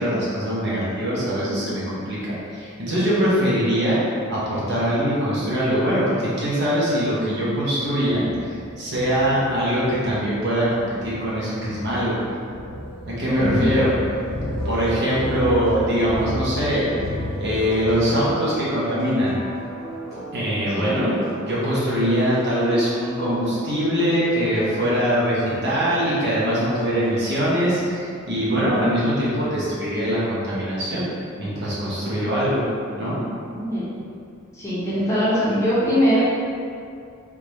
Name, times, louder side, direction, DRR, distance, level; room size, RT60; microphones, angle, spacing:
voice 1, 0.0-4.0 4.3-12.1 13.2-13.9 14.6-16.9 17.4-19.4 20.3-31.1 31.4-32.6 33.0-33.2, equal, 55° right, -8 dB, 1.1 m, -22 dB
sound 1, 7.5-17.9, left 1 dB, 40° left, 0.8 m, -32 dB
voice 2, 13.3-13.8 20.7-21.0 33.5-33.9 34.5-36.2, equal, 15° left, -9 dB, 0.9 m, -22 dB
sound 2, 14.6-27.3, right 1 dB, 15° right, 1.3 m, -36 dB
3.6 x 3.4 x 3.1 m, 2.3 s
head